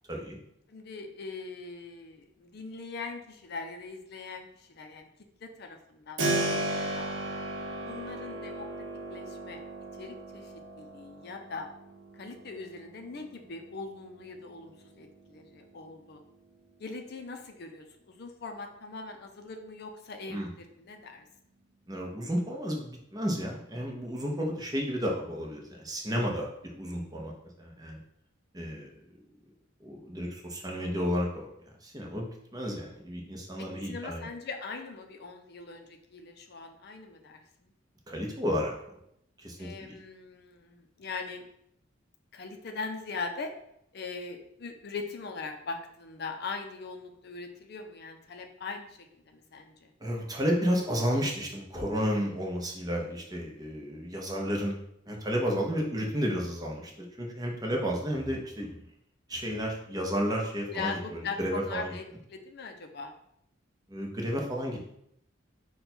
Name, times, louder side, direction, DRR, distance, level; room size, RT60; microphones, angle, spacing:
voice 1, 0.7-5.1 5.4-7.1 7.8-8.8 9.1-9.6 9.9-11.7 12.1-16.2 16.8-21.3 33.6-37.7 39.6-41.5 42.3-43.5 43.9-49.9 60.7-62.0 62.3-63.1, left 4 dB, 55° left, 4 dB, 0.5 m, -41 dB
Keyboard (musical), 6.2-16.9, right 1 dB, 65° right, 0.8 m, -37 dB
voice 2, 21.9-28.0 28.5-28.9 29.8-31.5 31.8-34.3 38.1-38.7 39.4-40.0 50.0-54.8 55.1-58.7 59.3-61.9 63.9-64.9, equal, 20° right, 0 dB, 0.8 m, -32 dB
5.3 x 2.2 x 4.3 m, 0.74 s
head